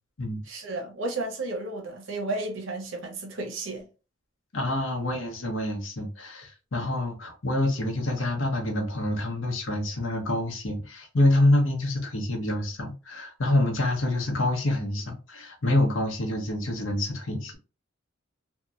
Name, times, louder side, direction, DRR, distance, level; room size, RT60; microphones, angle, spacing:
voice 1, 0.4-3.9, right 2 dB, 80° right, 0.8 m, -33 dB
voice 2, 4.5-17.5, left 1 dB, 75° left, 0.9 m, -26 dB
2.8 x 2.2 x 2.4 m
head